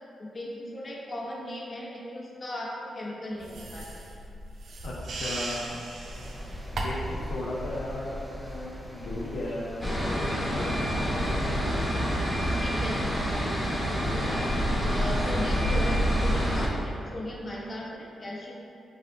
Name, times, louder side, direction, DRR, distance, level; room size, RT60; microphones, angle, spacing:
voice 1, 0.2-4.0 12.5-13.0 13.6-14.4 14.9-18.5, left 1 dB, 45° left, -4 dB, 0.8 m, -37 dB
sound 1, 3.4-7.2, right 2 dB, 70° right, 0.4 m, -37 dB
voice 2, 4.8-5.8 6.7-11.6 11.8-12.0, left 1 dB, 80° left, -6 dB, 0.5 m, -36 dB
sound 2, 6.0-16.8, equal, 10° right, 0.5 m, -38 dB
sound 3, 9.8-16.7, equal, 20° left, 1.0 m, -27 dB
5.5 x 2.4 x 2.7 m, 2.6 s
cardioid pair, 65°, 0 cm